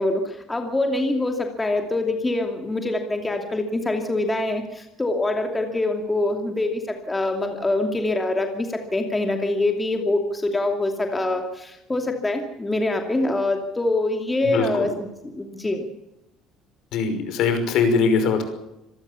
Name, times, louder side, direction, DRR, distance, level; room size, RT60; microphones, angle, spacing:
voice 1, 0.0-14.9 15.2-15.9, left 2 dB, 10° left, 4 dB, 2.7 m, -24 dB
voice 2, 14.4-14.9 16.9-18.4, left 5 dB, 65° left, 8 dB, 5.8 m, -21 dB
26.0 x 18.5 x 7.1 m, 0.89 s
cardioid pair, 150°, 0 cm